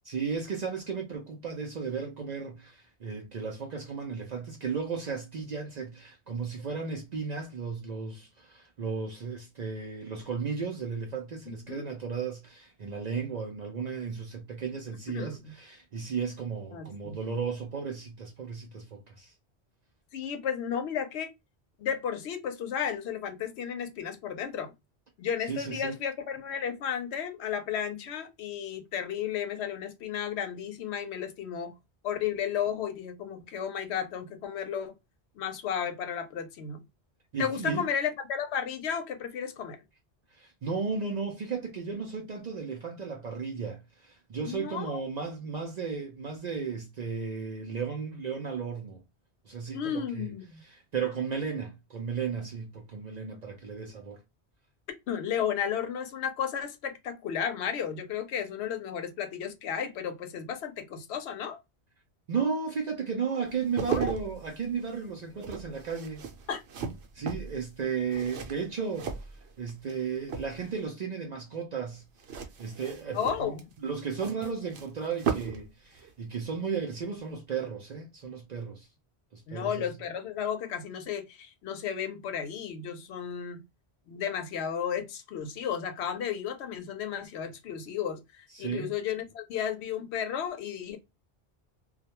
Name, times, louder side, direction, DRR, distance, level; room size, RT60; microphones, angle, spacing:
voice 1, 0.0-19.3 25.5-26.0 37.3-37.9 40.3-49.0 49.5-50.3 50.7-54.2 62.3-66.2 67.1-69.2 69.6-72.0 72.6-78.9 79.3-79.8 88.5-88.9, right 5 dB, 55° right, 0.5 m, -34 dB
voice 2, 15.1-15.5 16.7-17.2 20.1-21.3 21.8-24.7 25.2-31.7 32.0-34.9 35.4-36.8 37.4-39.8 44.4-45.0 49.7-50.6 55.1-61.6 63.9-64.1 66.5-66.6 73.1-73.7 79.5-83.6 84.1-91.0, left 8 dB, 75° left, 0.9 m, -33 dB
sound 1, 63.5-70.0 70.2-70.9 72.2-75.7 75.9-76.1, right 6 dB, 70° right, 0.9 m, -37 dB
2.3 x 2.1 x 2.8 m
omnidirectional pair, 1.1 m